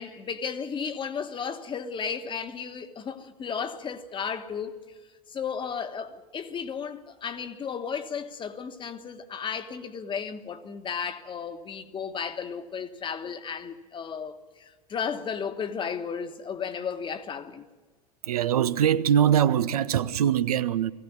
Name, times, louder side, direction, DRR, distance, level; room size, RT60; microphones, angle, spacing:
voice 1, 0.0-4.7 5.3-17.6, left 6 dB, 25° left, 1.4 m, -34 dB
voice 2, 18.2-20.9, right 9 dB, 70° right, 0.7 m, -22 dB
20.0 x 16.0 x 9.4 m
figure-of-eight pair, 85°, 20 cm